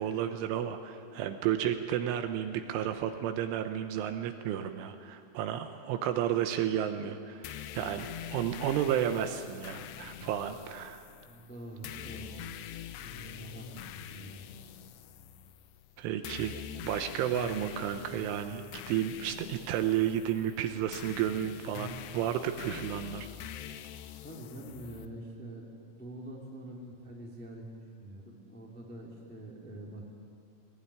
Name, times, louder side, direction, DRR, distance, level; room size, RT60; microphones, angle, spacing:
voice 1, 0.0-11.1 16.0-16.5 16.8-23.3, right 10 dB, 75° right, 8 dB, 3.2 m, -32 dB
sound 1, 7.4-25.1, left 10 dB, 85° left, 2.4 m, -45 dB
voice 2, 11.2-14.4 24.2-25.7 25.9-30.0, right 1 dB, 5° left, -2 dB, 1.5 m, -46 dB
19.5 x 19.0 x 10.0 m, 2.3 s
omnidirectional pair, 6.0 m